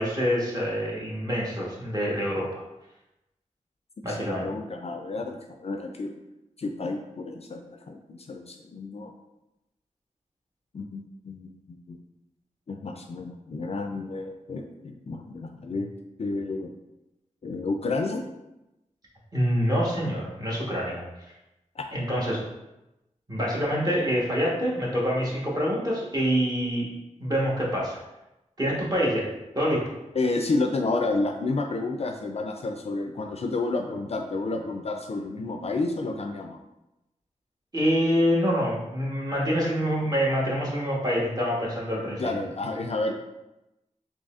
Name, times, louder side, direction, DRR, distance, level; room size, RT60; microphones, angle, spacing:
voice 1, 0.0-2.6 4.0-4.5 19.3-21.0 21.9-22.4 23.3-26.9 27.2-28.0 28.6-29.3 29.5-29.8 37.7-42.3, equal, 30° right, -5 dB, 1.2 m, -26 dB
voice 2, 4.1-6.1 6.6-9.1 10.7-12.0 12.7-15.9 16.2-16.7 17.4-18.2 21.8-21.9 30.2-36.6 42.2-43.1, left 3 dB, 50° left, 4 dB, 0.4 m, -30 dB
4.0 x 3.0 x 2.4 m, 0.94 s
wide cardioid pair, 60°, 14 cm